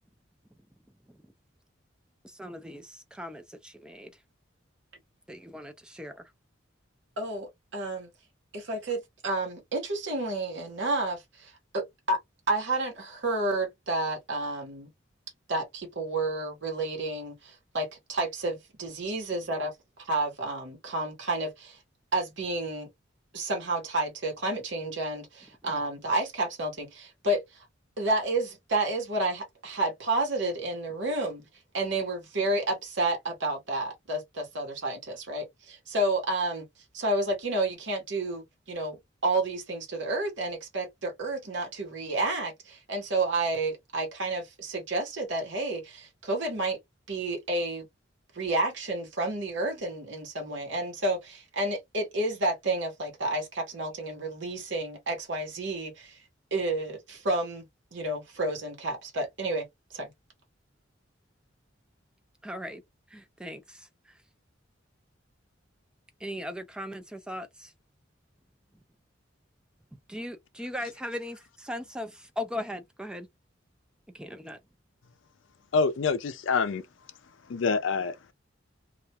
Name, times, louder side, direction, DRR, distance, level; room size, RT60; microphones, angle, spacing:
voice 1, 2.2-4.1 5.3-6.3 62.4-62.8 63.1-64.2 66.2-67.7 70.1-73.3 74.1-74.6, left 1 dB, 5° right, 0.3 m, -39 dB
voice 2, 7.2-8.1 8.5-12.2 12.5-14.9 15.5-19.7 20.0-21.8 22.1-22.9 23.3-27.6 28.0-31.4 31.7-36.6 36.9-46.8 47.1-47.9 48.3-56.2 56.5-57.6 57.9-59.7 59.9-60.1, right 2 dB, 70° right, 1.0 m, -30 dB
voice 3, 75.7-76.8 77.5-78.1, left 4 dB, 80° left, 0.5 m, -26 dB
2.4 x 2.2 x 2.8 m
head